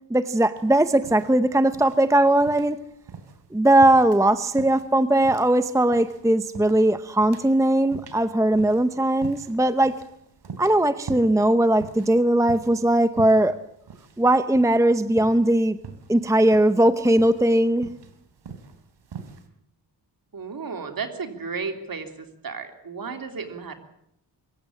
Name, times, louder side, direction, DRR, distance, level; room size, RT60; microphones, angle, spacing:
voice 1, 0.1-2.8 3.5-9.9 10.6-13.6 14.2-15.8 16.1-17.9, right 1 dB, 5° right, 12 dB, 0.8 m, -19 dB
sound 1, 0.5-19.5, right 5 dB, 70° right, 3.3 m, -44 dB
voice 2, 20.3-23.8, right 5 dB, 50° right, 6 dB, 3.3 m, -33 dB
24.5 x 15.0 x 8.6 m, 0.78 s
wide cardioid pair, 110°, 44 cm